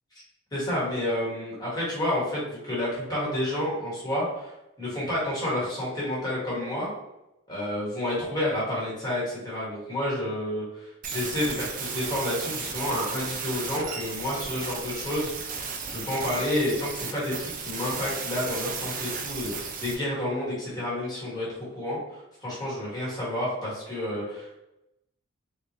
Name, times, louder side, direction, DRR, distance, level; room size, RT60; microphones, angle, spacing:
voice 1, 0.5-6.9 7.5-24.6, left 1 dB, 20° left, -7 dB, 1.4 m, -30 dB
sound 1, 11.0-19.9, right 5 dB, 40° right, 0.4 m, -34 dB
3.6 x 2.8 x 2.9 m, 0.91 s
head